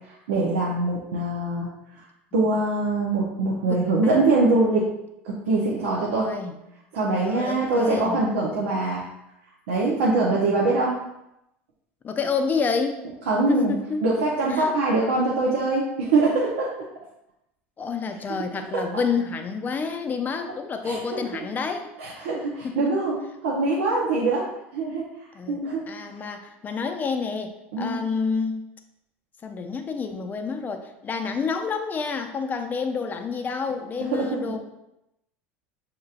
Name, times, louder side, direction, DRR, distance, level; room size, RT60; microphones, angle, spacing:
voice 1, 0.1-1.7 2.3-4.9 5.2-6.3 6.9-9.0 9.7-11.0 13.3-13.7 14.0-16.7 18.7-18.8 20.8-21.0 21.3-21.5 22.0-24.5 24.7-25.0 25.5-25.8 27.7-28.0 34.1-34.6, right 2 dB, 80° right, -4 dB, 0.8 m, -23 dB
voice 2, 6.1-6.6 7.1-8.2 10.2-10.7 12.0-13.0 13.5-14.1 14.5-14.7 17.8-21.9 22.6-22.9 25.3-28.6 29.4-34.6, left 5 dB, 30° left, 6 dB, 0.6 m, -29 dB
6.4 x 2.9 x 2.4 m, 0.86 s
hypercardioid pair, 90°, 7 cm